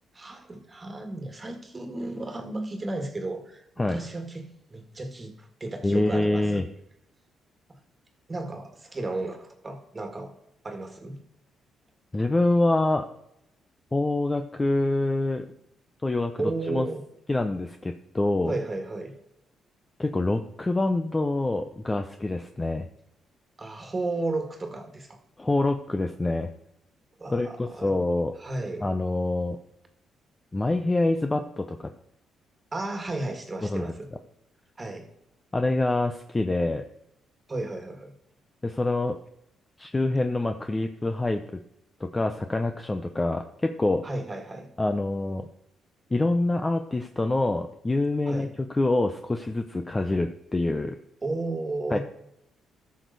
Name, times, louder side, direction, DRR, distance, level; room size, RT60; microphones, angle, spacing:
voice 1, 0.1-6.6 8.3-10.3 10.6-11.2 16.4-17.0 18.5-19.1 23.6-25.2 27.2-28.0 28.4-28.9 31.3-31.5 32.7-34.1 34.8-35.1 37.5-38.1 44.0-44.7 48.3-48.5 51.2-52.0, right 2 dB, 25° right, 5 dB, 1.8 m, -33 dB
voice 2, 5.8-6.6 12.1-13.1 13.9-15.4 16.0-16.9 17.3-18.5 20.0-22.9 25.4-26.5 27.3-28.3 28.8-29.6 30.5-31.9 33.6-33.8 35.5-36.8 38.6-39.2 39.8-41.4 42.1-44.0 44.8-45.5 46.1-51.0 51.9-52.0, left 2 dB, 20° left, 6 dB, 0.6 m, -26 dB
13.5 x 6.3 x 4.0 m, 0.81 s
cardioid pair, 90°, 0 cm